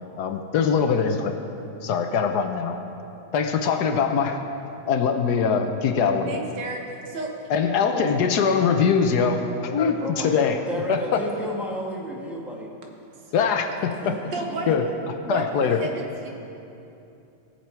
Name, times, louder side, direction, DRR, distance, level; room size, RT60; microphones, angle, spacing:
voice 1, 0.2-1.4 1.8-2.8 3.3-4.4 4.9-6.4 7.5-10.6 10.9-11.2 13.3-14.2 14.7-14.9 15.3-15.8, left 6 dB, 70° left, 6 dB, 1.2 m, -22 dB
voice 2, 6.3-7.3 14.3-14.7 15.2-16.3, right 2 dB, 80° right, 1 dB, 2.0 m, -32 dB
voice 3, 10.0-12.7 14.0-14.1, equal, ahead, -2 dB, 1.3 m, -32 dB
18.5 x 6.8 x 4.5 m, 2.8 s
omnidirectional pair, 1.9 m